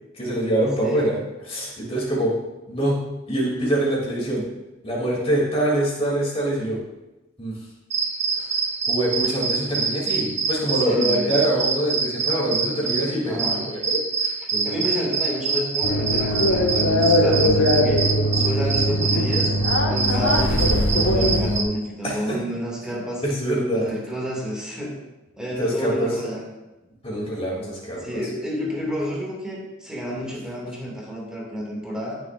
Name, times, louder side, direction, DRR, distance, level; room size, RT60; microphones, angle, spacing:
voice 1, 0.1-1.2 1.5-2.3 2.7-4.4 4.8-6.8 7.4-7.5 8.9-14.9 20.2-20.3 22.0-22.4 22.8-22.9 23.2-23.9 25.6-26.1 27.0-28.2, right 1 dB, 30° left, -4 dB, 3.1 m, -24 dB
voice 2, 0.8-1.1 10.8-11.4 13.2-13.6 14.6-19.5 19.9-23.2 23.7-24.9 25.4-26.4 28.0-32.2, equal, 5° right, -4 dB, 2.4 m, -30 dB
sound 1, 7.9-21.6, right 5 dB, 35° right, 1.1 m, -25 dB
sound 2, 15.8-21.6, left 1 dB, 85° left, 1.2 m, -21 dB
13.5 x 7.1 x 2.6 m, 1.0 s
head